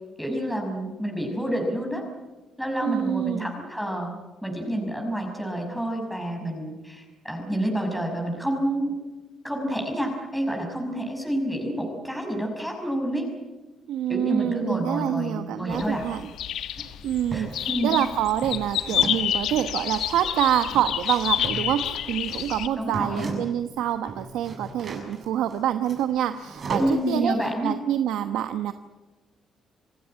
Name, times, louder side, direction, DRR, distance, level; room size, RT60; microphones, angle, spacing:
voice 1, 0.2-2.0 2.6-4.1 4.4-8.9 9.4-13.3 14.1-16.0 17.3-17.9 22.8-23.3 26.8-27.7, right 1 dB, ahead, 1 dB, 5.8 m, -28 dB
voice 2, 2.8-3.5 13.9-16.3 17.0-28.7, right 11 dB, 90° right, 9 dB, 1.0 m, -26 dB
sound 1, 15.7-22.7, left 10 dB, 80° left, 1.4 m, -29 dB
sound 2, 16.8-17.5 17.9-23.7 23.9-27.1, right 3 dB, 45° right, 6.9 m, -36 dB
28.0 x 17.0 x 8.8 m, 1.2 s
cardioid pair, 90°, 0 cm